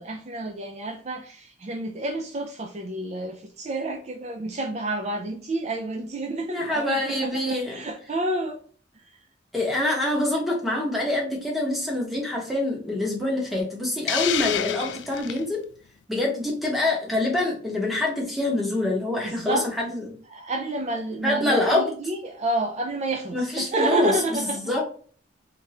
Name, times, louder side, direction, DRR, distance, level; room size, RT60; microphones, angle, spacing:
voice 1, 0.0-8.6 8.9-9.3 19.2-19.7 20.3-24.7, right 2 dB, 40° right, 0.4 m, -30 dB
voice 2, 6.5-7.7 9.5-15.6 16.1-20.1 21.2-21.9 23.3-24.1 24.6-24.8, left 2 dB, ahead, 1.1 m, -25 dB
Hiss, 14.1-15.4, left 10 dB, 75° left, 0.3 m, -28 dB
3.6 x 3.2 x 2.9 m
head